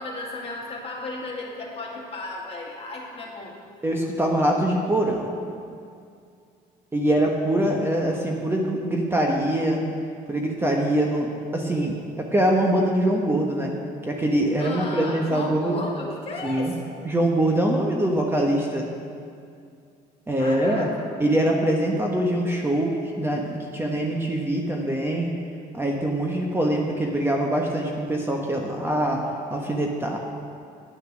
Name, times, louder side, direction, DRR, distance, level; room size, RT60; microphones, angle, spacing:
voice 1, 0.0-3.5 7.0-7.2 14.6-16.9 20.4-21.1, left 2 dB, 35° left, -2 dB, 2.2 m, -34 dB
voice 2, 3.8-5.3 6.9-9.8 10.3-13.7 14.1-15.8 16.4-16.7 17.0-18.9 20.3-20.9 21.2-25.3 25.7-29.2 29.5-30.2, right 1 dB, 15° right, 0 dB, 1.0 m, -23 dB
9.3 x 9.2 x 6.1 m, 2.4 s
cardioid pair, 110°, 17 cm